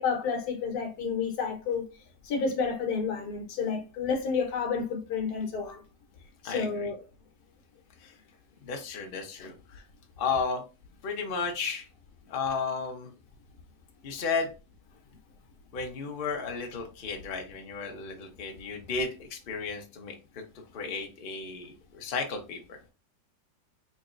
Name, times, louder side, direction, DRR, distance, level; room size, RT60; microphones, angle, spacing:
voice 1, 0.0-1.9 2.2-5.8 6.4-7.0 9.4-9.5, left 5 dB, 65° left, 1.4 m, -30 dB
voice 2, 6.4-6.9 8.0-8.1 8.6-9.8 10.2-10.6 11.0-11.9 12.3-13.1 14.0-14.5 15.7-20.1 20.7-22.6, left 5 dB, 45° left, 0.7 m, -33 dB
4.1 x 3.4 x 2.4 m
omnidirectional pair, 1.9 m